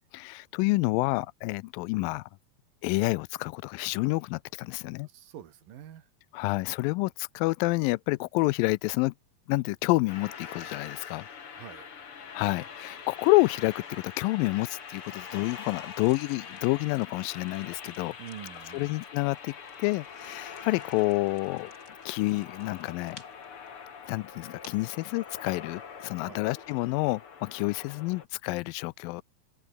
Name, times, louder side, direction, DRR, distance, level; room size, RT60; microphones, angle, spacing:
voice 1, 0.1-2.3 2.8-5.1 6.3-9.1 9.5-11.3 12.3-18.1 18.7-19.5 19.8-21.7 22.1-23.2 24.1-29.2, left 22 dB, 85° left, 2.2 m, -28 dB
voice 2, 5.0-6.1 11.5-11.9 18.2-19.0 26.2-26.5, right 10 dB, 80° right, 3.6 m, -46 dB
sound 1, 10.1-28.3, left 6 dB, 40° left, 2.9 m, -44 dB
sound 2, 15.6-25.0, left 2 dB, 25° left, 7.7 m, -58 dB
sound 3, 17.5-22.6 22.9-23.0 23.1-25.4, right 2 dB, 25° right, 7.1 m, -69 dB
omnidirectional pair, 4.1 m